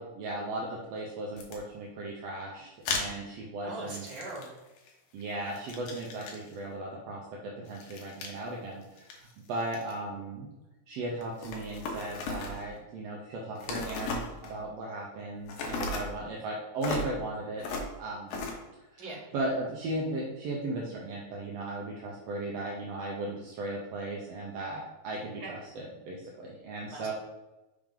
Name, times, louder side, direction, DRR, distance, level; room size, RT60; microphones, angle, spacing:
voice 1, 0.0-4.1 5.1-10.5 10.9-17.7 18.0-18.4 18.9-27.1, right 2 dB, 75° right, -2 dB, 1.6 m, -37 dB
sound 1, 1.4-1.6 2.9-3.1 3.9-4.9 5.2-6.5 7.7-8.4 8.8-9.9 11.2-12.7 13.6-14.6 15.5-16.1 16.8-17.1 17.6-17.9 18.3-18.5, left 3 dB, 85° left, 2.7 m, -36 dB
voice 2, 3.6-4.5 19.0-19.2 25.4-25.5 26.9-27.1, right 2 dB, 40° right, -4 dB, 2.1 m, -40 dB
6.0 x 5.2 x 3.8 m, 1.0 s
omnidirectional pair, 3.8 m